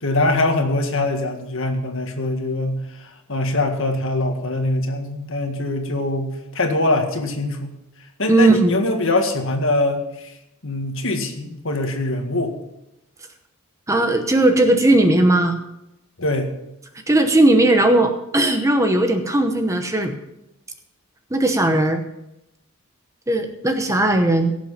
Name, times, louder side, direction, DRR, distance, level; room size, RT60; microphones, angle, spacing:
voice 1, 0.0-7.7 8.2-10.3 10.6-12.5 16.2-16.5, left 2 dB, 60° left, 4 dB, 1.8 m, -23 dB
voice 2, 8.3-8.8 13.9-15.6 17.1-20.2 21.3-22.0 23.3-24.5, right 1 dB, 15° right, 6 dB, 0.9 m, -17 dB
16.5 x 7.4 x 5.8 m, 0.87 s
head